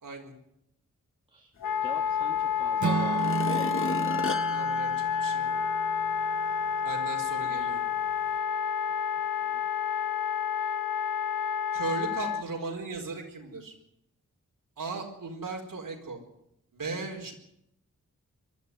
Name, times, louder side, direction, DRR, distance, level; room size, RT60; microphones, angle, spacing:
voice 1, 0.0-0.3 4.5-5.6 6.8-7.8 11.7-13.7 14.8-16.2 16.7-17.3, right 3 dB, 85° right, 1 dB, 4.6 m, -37 dB
Wind instrument woodwind instrument, 1.6-12.4, left 7 dB, 85° left, 1.2 m, -29 dB
voice 2, 1.8-3.8 9.1-9.6, right 2 dB, 15° right, 1 dB, 1.7 m, -44 dB
sound 1, 2.4-2.5 3.1-5.9 6.4-6.5, left 3 dB, 40° left, 1.5 m, -36 dB
Acoustic guitar / Strum, 2.8-6.9, right 6 dB, 60° right, 0.9 m, -34 dB
24.0 x 12.5 x 9.4 m, 0.77 s
wide cardioid pair, 100°, 32 cm